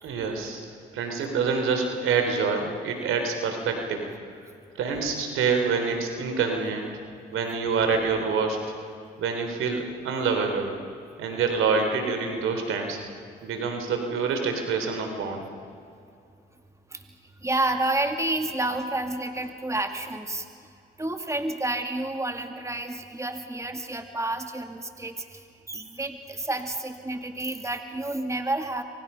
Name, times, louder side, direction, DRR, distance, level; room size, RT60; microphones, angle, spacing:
voice 1, 0.0-0.6 0.9-4.0 4.8-6.9 7.3-8.6 9.2-10.7 11.2-13.0 13.4-15.5, right 5 dB, 80° right, 5 dB, 3.7 m, -26 dB
voice 2, 17.4-20.4 21.0-25.4 25.7-28.8, right 2 dB, 15° right, 5 dB, 2.4 m, -30 dB
28.5 x 24.5 x 5.7 m, 2.4 s
supercardioid pair, 55°, 21 cm